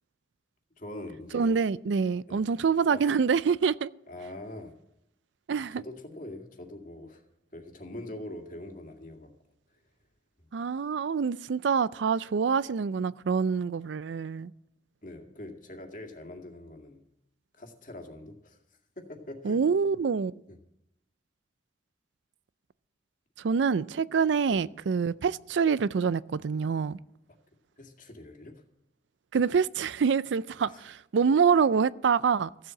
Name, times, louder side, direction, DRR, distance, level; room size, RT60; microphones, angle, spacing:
voice 1, 0.8-1.6 2.3-2.5 2.9-3.1 4.1-4.8 5.7-7.2 7.5-9.3 10.4-10.5 15.0-17.0 17.5-18.6 19.0-19.6 20.5-20.6 24.5-24.6 27.8-28.6 30.7-30.8, left 1 dB, 45° left, 2.1 m, -43 dB
voice 2, 1.3-3.9 5.5-5.8 10.5-14.5 19.4-20.4 23.4-27.0 29.3-32.5, right 6 dB, 85° right, 0.4 m, -26 dB
15.0 x 7.6 x 7.6 m
head